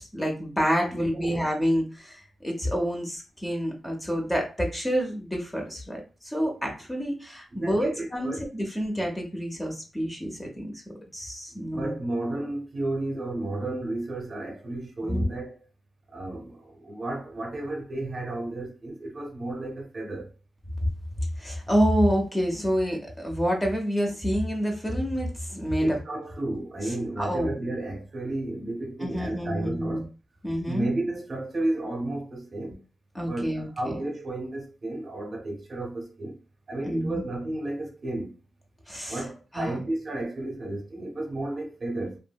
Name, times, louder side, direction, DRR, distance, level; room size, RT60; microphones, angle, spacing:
voice 1, 0.0-10.7 11.1-11.9 15.0-15.2 21.4-25.9 27.2-27.5 29.0-30.0 30.4-30.9 33.1-33.7 36.9-37.2 38.9-39.2 39.5-39.7, equal, 10° left, 0.5 m, -28 dB
voice 2, 0.9-1.5 7.5-8.4 11.5-15.6 16.1-20.3 25.8-30.1 30.7-32.8 33.1-36.4 36.7-38.3 39.1-42.2, right 2 dB, 40° right, 0.7 m, -32 dB
2.7 x 2.6 x 2.2 m
wide cardioid pair, 155°, 0 cm